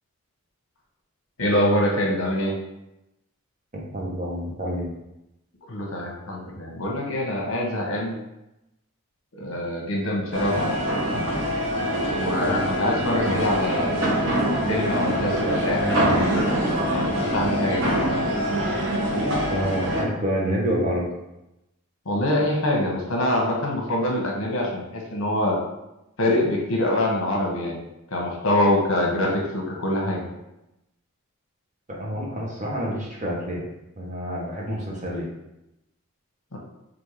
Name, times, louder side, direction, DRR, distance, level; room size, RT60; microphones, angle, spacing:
voice 1, 1.4-2.5 5.7-8.1 9.3-10.8 12.1-14.0 14.7-16.5 16.9-17.9 22.0-25.6 26.2-27.8 28.1-30.3 36.5-36.6, left 1 dB, 65° left, -1 dB, 0.9 m, -25 dB
voice 2, 3.9-4.9 12.5-12.6 13.2-13.6 19.5-21.1 31.9-33.6 34.0-35.3, equal, 35° right, -3 dB, 0.9 m, -28 dB
sound 1, 10.3-20.0, equal, 60° right, 1.0 m, -24 dB
5.3 x 2.6 x 3.0 m, 0.90 s
head